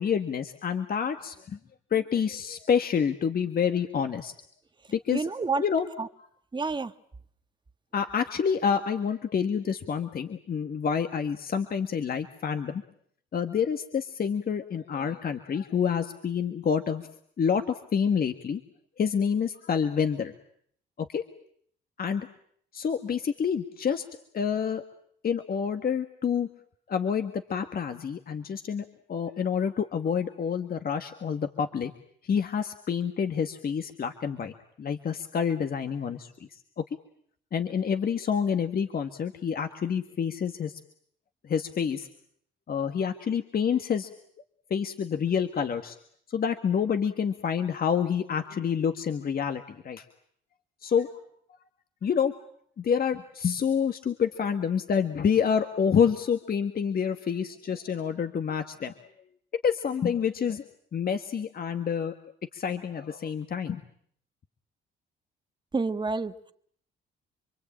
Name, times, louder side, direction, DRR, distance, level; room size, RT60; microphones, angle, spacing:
voice 1, 0.0-1.6 1.9-4.3 4.9-5.3 5.6-5.9 7.9-12.8 13.3-17.0 17.4-18.6 19.0-20.3 21.0-21.2 22.0-22.3 22.7-24.0 24.3-24.8 25.2-26.5 26.9-31.9 32.2-36.6 37.5-40.8 41.4-42.1 42.7-44.1 44.7-46.0 46.3-50.1 50.8-51.1 52.0-52.3 52.8-58.9 59.6-60.6 60.9-62.1 62.5-63.8, left 7 dB, 50° left, 1.8 m, -28 dB
voice 2, 5.1-5.6 6.0-6.1 6.5-6.9 65.7-66.5, right 4 dB, 25° right, 1.4 m, -29 dB
27.5 x 23.5 x 8.8 m
cardioid pair, 90°, 20 cm